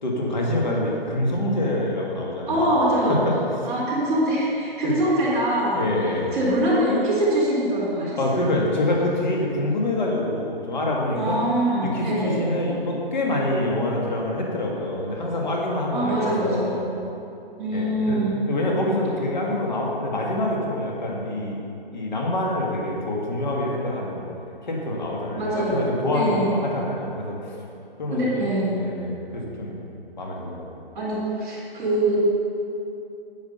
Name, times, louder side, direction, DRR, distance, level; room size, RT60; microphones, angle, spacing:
voice 1, 0.0-2.7 3.1-3.3 4.8-4.9 5.7-6.3 8.2-11.4 11.8-16.8 17.7-18.2 18.5-21.6 21.9-24.2 24.6-27.4 28.0-29.8 30.2-30.8, left 1 dB, 50° left, -2 dB, 2.1 m, -26 dB
voice 2, 2.5-3.2 3.6-5.8 6.3-8.4 11.1-12.4 15.9-16.8 17.6-18.3 25.4-26.5 28.1-28.8 30.9-32.2, right 1 dB, 10° right, -12 dB, 2.3 m, -23 dB
11.0 x 7.8 x 5.7 m, 2.8 s
hypercardioid pair, 180°, 31 cm